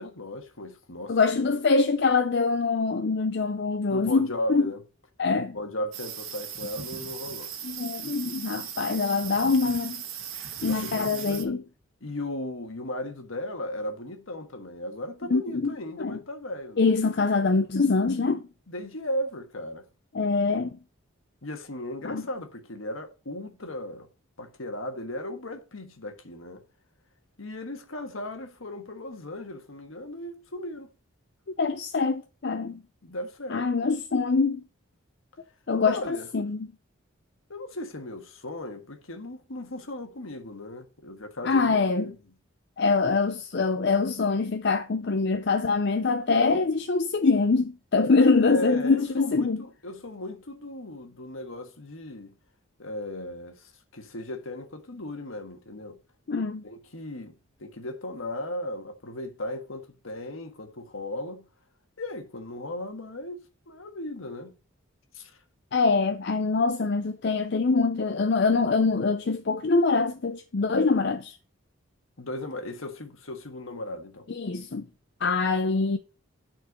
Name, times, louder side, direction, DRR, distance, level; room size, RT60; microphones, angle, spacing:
voice 1, 0.0-1.6 3.9-4.8 5.5-7.5 10.7-11.5 12.0-16.9 18.7-19.8 21.4-24.1 24.4-26.6 27.4-30.9 33.0-33.7 35.9-36.3 37.5-42.2 48.2-52.3 52.8-56.0 56.6-61.4 62.0-64.5 65.1-65.4 72.2-74.3, left 1 dB, 75° left, 1.5 m, -36 dB
voice 2, 1.1-4.7 5.2-5.6 7.6-10.0 10.6-11.6 15.3-16.2 16.8-18.4 20.1-20.8 22.0-22.2 31.6-32.8 33.5-34.6 35.7-36.7 41.4-42.1 42.8-49.6 56.3-56.6 65.7-71.4 74.3-74.9 75.2-76.0, left 4 dB, 55° left, 0.5 m, -24 dB
sound 1, 5.9-11.4, right 8 dB, 75° right, 1.4 m, -38 dB
9.5 x 4.5 x 5.2 m
head